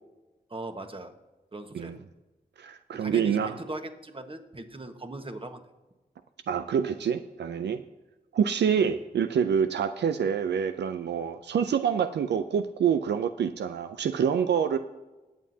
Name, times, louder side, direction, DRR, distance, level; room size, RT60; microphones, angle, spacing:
voice 1, 0.5-1.1 1.5-2.1 3.0-5.6 8.8-8.9, right 2 dB, 30° right, 6 dB, 1.4 m, -39 dB
voice 2, 2.6-3.6 6.5-7.8 8.3-14.8, right 7 dB, 85° right, 10 dB, 0.4 m, -26 dB
20.5 x 7.4 x 2.8 m, 1.1 s
cardioid pair, 40°, 17 cm